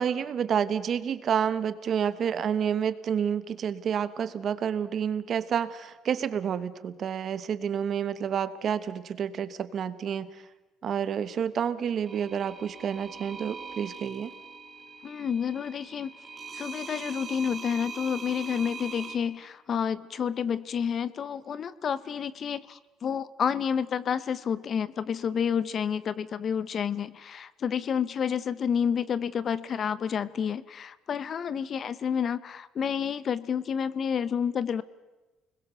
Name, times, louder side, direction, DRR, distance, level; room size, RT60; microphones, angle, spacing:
voice 1, 0.0-10.2 10.8-14.3, right 8 dB, 40° right, 14 dB, 1.2 m, -29 dB
sound 1, 12.1-19.1, right 5 dB, 20° right, 2.5 m, -42 dB
voice 2, 15.0-16.1 16.5-34.8, left 7 dB, 35° left, 18 dB, 0.7 m, -29 dB
29.5 x 21.0 x 6.8 m, 1.1 s
cardioid pair, 155°, 0 cm